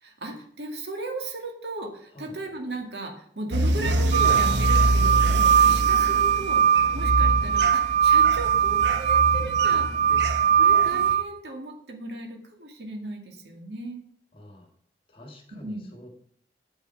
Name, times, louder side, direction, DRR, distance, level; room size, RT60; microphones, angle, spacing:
voice 1, 0.0-14.0 15.6-15.9, right 2 dB, 70° right, 3 dB, 2.2 m, -36 dB
sound 1, 3.5-11.1, right 1 dB, 85° right, 1.2 m, -27 dB
sound 2, 4.1-11.2, right 8 dB, 40° right, 0.4 m, -21 dB
voice 2, 14.3-14.7 15.1-16.1, left 1 dB, 30° left, 3 dB, 2.3 m, -46 dB
9.0 x 8.1 x 4.7 m, 0.65 s
head